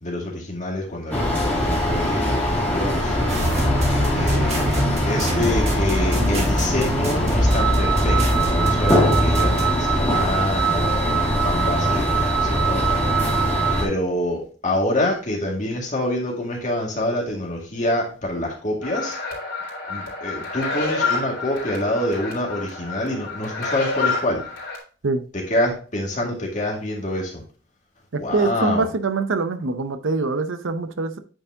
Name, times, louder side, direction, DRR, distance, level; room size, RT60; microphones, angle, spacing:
voice 1, 0.0-3.1 4.1-4.8 5.1-12.1 12.4-13.2 13.8-19.2 19.9-24.4 25.3-27.3 28.2-28.9, left 1 dB, 40° left, 2.0 m, -26 dB
sound 1, 1.1-13.9, right 1 dB, 10° left, 2.3 m, -21 dB
sound 2, 3.3-9.7, equal, 35° right, 1.2 m, -24 dB
sound 3, 18.8-24.8, left 4 dB, 70° left, 3.0 m, -28 dB
voice 2, 28.3-31.2, right 3 dB, 75° right, 0.6 m, -23 dB
8.7 x 4.7 x 2.7 m
head